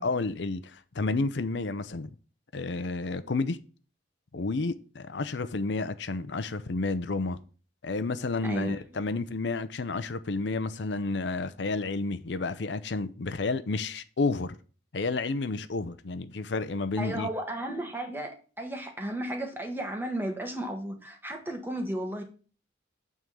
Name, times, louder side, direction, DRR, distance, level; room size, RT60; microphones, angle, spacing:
voice 1, 0.0-2.1 2.5-3.6 4.3-7.4 7.8-14.6 14.9-17.3, left 3 dB, 75° left, 0.6 m, -31 dB
voice 2, 8.4-8.8 17.0-22.2, right 1 dB, 10° right, 1.4 m, -34 dB
9.2 x 3.7 x 6.9 m
head